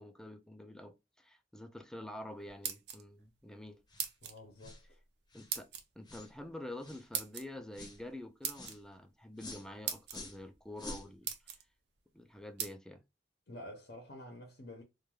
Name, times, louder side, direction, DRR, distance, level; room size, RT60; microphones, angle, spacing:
voice 1, 0.0-3.8 5.3-5.7 6.0-11.5 12.1-13.0, left 1 dB, 5° left, 0.3 m, -47 dB
sound 1, 2.4-3.3 4.0-4.4 5.5-5.8 7.1-7.5 8.4-8.8 9.5-9.6 9.9-10.2 10.8-10.9 11.2-11.6 12.6-12.7, right 8 dB, 75° right, 0.5 m, -38 dB
sound 2, 3.9-4.1 4.6-4.8 5.3-5.5 6.1-6.3 6.8-7.1 7.7-8.0 8.5-8.8 9.4-9.7 10.1-10.4 10.8-11.1, left 2 dB, 25° left, 0.8 m, -48 dB
voice 2, 4.2-5.0 13.5-14.8, left 1 dB, 60° left, 0.6 m, -49 dB
2.3 x 2.2 x 3.0 m
head